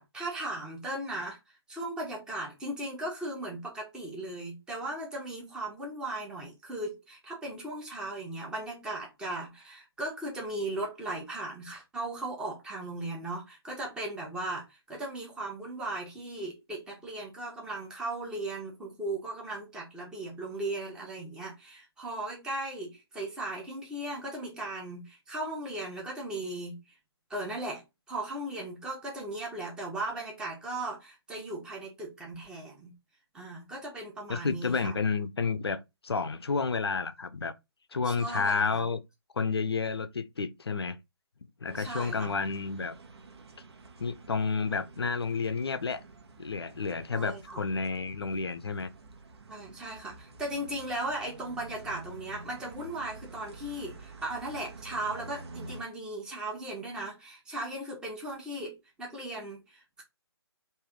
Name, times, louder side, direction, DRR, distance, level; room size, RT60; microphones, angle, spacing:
voice 1, 0.0-26.8 27.3-32.9 33.3-35.0 38.0-38.8 41.8-42.3 47.1-47.6 49.5-60.0, right 2 dB, 5° right, 0.9 m, -37 dB
voice 2, 34.3-37.5 37.9-39.0 39.4-41.0 41.6-43.0 44.0-46.0 46.4-48.9, left 4 dB, 70° left, 0.5 m, -30 dB
sound 1, 41.7-55.8, right 3 dB, 70° right, 1.1 m, -49 dB
3.2 x 2.7 x 3.6 m
figure-of-eight pair, 140°, 14 cm